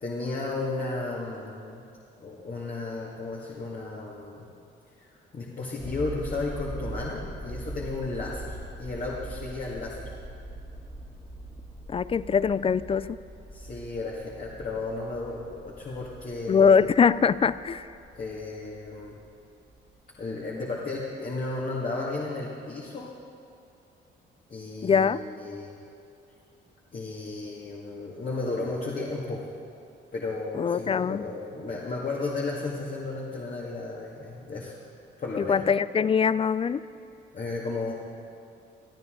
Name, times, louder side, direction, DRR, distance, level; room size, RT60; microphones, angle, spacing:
voice 1, 0.0-1.8 2.2-4.5 5.0-10.1 13.5-16.8 18.1-19.1 20.2-23.1 24.5-25.7 26.9-29.5 30.1-34.8 35.2-35.6 37.3-37.9, left 3 dB, 45° left, -4 dB, 2.1 m, -34 dB
sound 1, 5.8-20.0 20.6-20.7, right 1 dB, 15° left, 2.2 m, -42 dB
voice 2, 11.9-13.2 16.5-17.9 24.8-25.2 30.5-31.2 35.5-36.8, left 6 dB, 30° left, 17 dB, 0.4 m, -22 dB
22.0 x 12.5 x 3.9 m, 2.5 s
cardioid pair, 90°, 20 cm